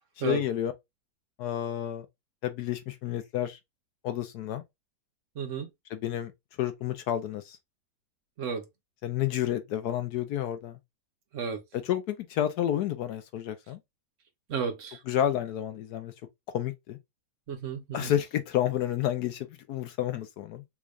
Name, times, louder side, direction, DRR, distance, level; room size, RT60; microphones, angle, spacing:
voice 1, 0.2-0.7 1.4-2.1 2.4-3.6 4.0-4.6 5.9-6.3 6.6-7.6 9.0-10.8 11.7-13.8 15.1-16.1 16.5-17.0 17.9-20.6, left 11 dB, 70° left, 1.1 m, -30 dB
voice 2, 5.4-5.7 8.4-8.6 11.3-11.6 14.5-15.0 17.5-18.1, right 6 dB, 55° right, 1.0 m, -32 dB
3.6 x 3.2 x 2.3 m
omnidirectional pair, 1.9 m